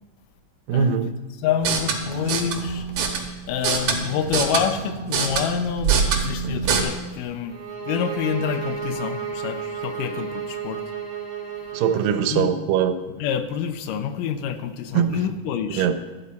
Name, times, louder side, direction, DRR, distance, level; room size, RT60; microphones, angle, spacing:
voice 1, 0.7-1.1 11.7-12.9 14.9-15.2 15.8-16.0, right 8 dB, 85° right, 9 dB, 2.5 m, -21 dB
voice 2, 1.4-2.9 3.5-7.6 7.9-10.8 12.3-12.5 13.2-15.9, left 8 dB, 80° left, 9 dB, 2.3 m, -27 dB
sound 1, 1.5-6.8, right 5 dB, 60° right, 2.0 m, -25 dB
sound 2, 7.5-12.4, right 6 dB, 30° right, 2.2 m, -32 dB
12.5 x 11.0 x 4.2 m, 1.2 s
omnidirectional pair, 3.9 m